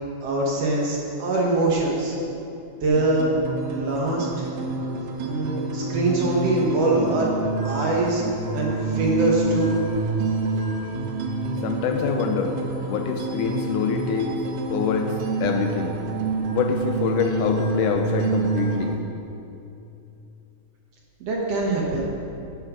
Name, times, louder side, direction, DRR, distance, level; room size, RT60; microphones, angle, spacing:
voice 1, 0.2-2.2 2.8-3.3 3.7-4.5 5.2-7.3 7.6-8.2 8.5-9.7 21.2-22.0, right 2 dB, 60° right, -3 dB, 1.9 m, -23 dB
sound 1, 2.9-19.0, right 3 dB, 80° right, 2.4 m, -28 dB
voice 2, 11.6-12.5 12.8-14.3 14.7-15.1 15.4-16.0 16.5-19.0, left 6 dB, 80° left, 4 dB, 2.1 m, -25 dB
9.8 x 6.6 x 6.2 m, 2.8 s
omnidirectional pair, 3.8 m